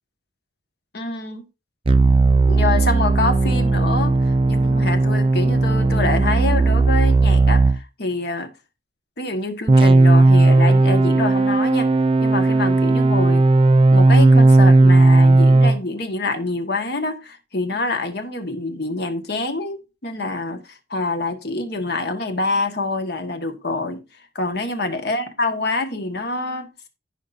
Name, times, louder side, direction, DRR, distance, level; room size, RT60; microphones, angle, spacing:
voice 1, 0.9-1.4 2.5-8.5 9.2-11.9 12.2-13.5 13.9-24.0 24.3-26.7, left 2 dB, 60° left, 1.5 m, -26 dB
sound 1, 1.9-7.8 9.7-15.8, right 2 dB, 30° right, 0.4 m, -15 dB
14.5 x 5.5 x 2.6 m
head